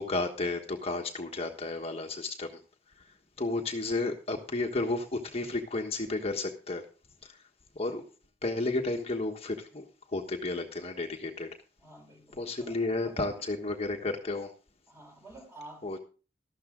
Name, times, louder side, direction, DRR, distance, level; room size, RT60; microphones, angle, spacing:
voice 1, 0.0-2.5 3.4-6.8 7.2-7.3 7.7-8.0 8.4-9.9 10.1-11.5 12.4-14.5 15.8-16.0, left 2 dB, 35° left, 1.3 m, -32 dB
voice 2, 11.8-13.4 14.9-16.0, right 1 dB, 15° right, 4.0 m, -50 dB
13.5 x 12.5 x 3.8 m
head